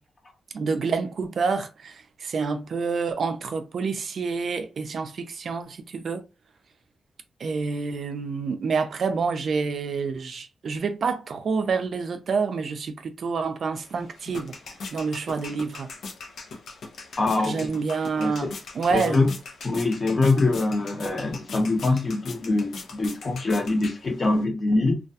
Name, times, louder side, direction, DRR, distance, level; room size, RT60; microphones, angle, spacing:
voice 1, 0.5-6.2 7.4-14.5 14.9-15.9 17.4-18.5 18.8-19.2, right 5 dB, 60° right, 0.3 m, -28 dB
sound 1, 13.7-24.4, left 4 dB, 75° left, 0.6 m, -41 dB
voice 2, 17.2-17.7 18.2-18.5 18.9-19.3 19.6-25.0, left 2 dB, 35° left, 0.7 m, -24 dB
2.3 x 2.2 x 2.7 m
wide cardioid pair, 115°, 0 cm